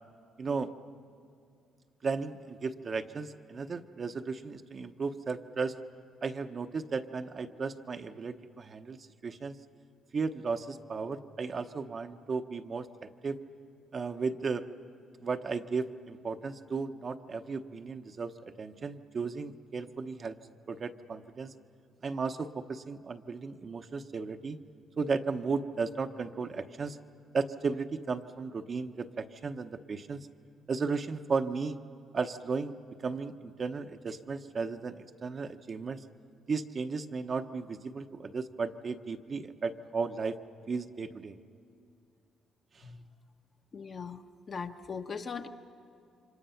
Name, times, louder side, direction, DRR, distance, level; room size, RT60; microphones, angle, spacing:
voice 1, 0.4-0.7 2.0-5.7 6.2-9.0 9.2-9.6 10.1-12.9 13.2-13.4 13.9-14.6 15.2-18.3 18.6-20.4 20.7-21.5 22.0-24.6 25.0-27.0 27.3-30.3 30.7-31.8 32.1-32.7 33.0-36.0 36.5-40.4 40.7-41.4, right 4 dB, 45° right, 7 dB, 0.9 m, -35 dB
voice 2, 43.7-44.2 44.5-45.5, left 5 dB, 45° left, 5 dB, 1.2 m, -39 dB
28.5 x 25.0 x 5.8 m, 2.5 s
cardioid pair, 90°, 0 cm